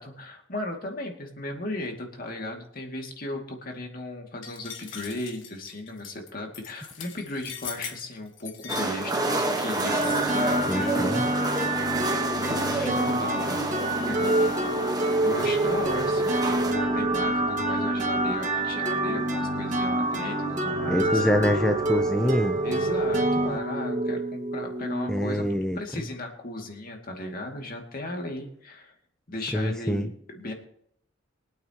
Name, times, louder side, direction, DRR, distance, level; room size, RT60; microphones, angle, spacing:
voice 1, 0.0-11.4 11.8-13.7 14.1-21.2 22.6-28.9 29.3-30.5, left 1 dB, 50° left, 2 dB, 2.4 m, -36 dB
sound 1, 4.4-10.7, left 8 dB, 75° left, 1.6 m, -41 dB
sound 2, 8.7-16.7, right 2 dB, 20° right, 1.3 m, -30 dB
sound 3, 9.8-25.5, right 2 dB, 40° right, 1.7 m, -27 dB
voice 2, 10.7-11.2 20.9-22.6 25.1-25.8 29.5-30.1, equal, 5° left, 5 dB, 0.6 m, -25 dB
23.5 x 8.9 x 3.0 m, 0.70 s
head